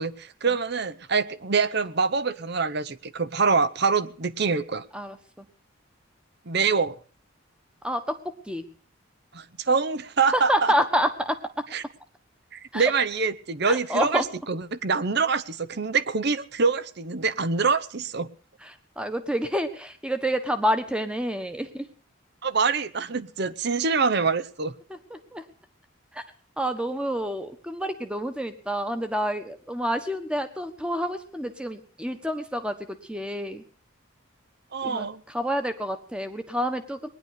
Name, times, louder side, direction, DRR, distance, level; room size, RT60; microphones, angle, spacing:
voice 1, 0.0-4.8 6.5-6.9 9.3-10.7 11.7-11.8 12.5-14.2 14.5-18.3 22.4-24.7 34.7-35.2, right 5 dB, 50° right, 17 dB, 0.8 m, -25 dB
voice 2, 4.9-5.5 7.8-8.7 10.3-11.7 12.7-12.9 13.6-14.3 18.6-21.9 24.9-25.5 26.1-26.2 26.6-33.6 34.8-37.1, equal, 5° right, 9 dB, 1.3 m, -28 dB
19.5 x 11.0 x 6.5 m, 0.43 s
head